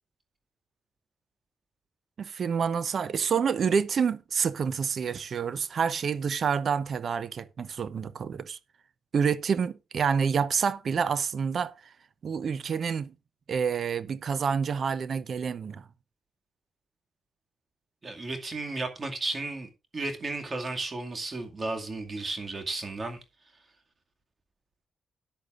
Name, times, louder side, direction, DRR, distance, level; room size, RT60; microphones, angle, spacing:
voice 1, 2.2-8.6 9.1-11.7 12.2-13.1 13.5-15.8, right 6 dB, 55° right, 0.8 m, -28 dB
voice 2, 18.0-23.2, right 2 dB, 35° right, 2.2 m, -34 dB
13.5 x 10.0 x 2.5 m
cardioid pair, 80°, 0 cm